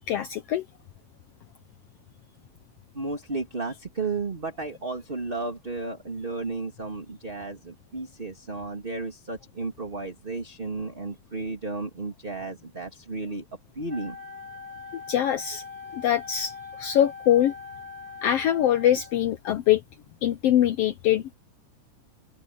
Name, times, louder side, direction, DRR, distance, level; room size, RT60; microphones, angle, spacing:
voice 1, 0.1-0.6 14.9-15.6 15.9-17.5 18.2-19.8 20.2-21.3, left 11 dB, 85° left, 1.3 m, -23 dB
voice 2, 2.9-13.4 13.7-14.2, right 3 dB, 15° right, 2.7 m, -33 dB
Wind instrument woodwind instrument, 13.9-19.4, left 5 dB, 45° right, 3.6 m, -42 dB
open air
omnidirectional pair, 3.6 m